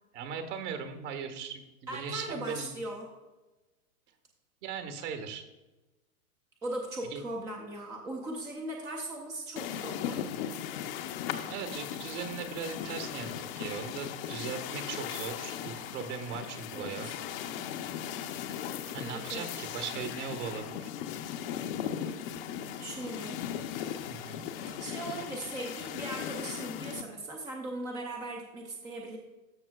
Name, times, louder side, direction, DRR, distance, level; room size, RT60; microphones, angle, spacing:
voice 1, 0.1-2.8 4.6-5.5 7.1-7.2 11.5-17.1 18.9-20.9 24.1-24.5, right 6 dB, 50° right, 7 dB, 1.5 m, -39 dB
voice 2, 1.9-3.1 6.6-10.2 16.7-17.1 19.0-19.5 22.8-23.4 24.5-29.2, right 1 dB, 10° right, 0 dB, 0.5 m, -39 dB
sound 1, 9.6-27.0, left 9 dB, 40° left, 0.7 m, -38 dB
13.5 x 6.0 x 2.3 m, 1.1 s
hypercardioid pair, 135°, 44 cm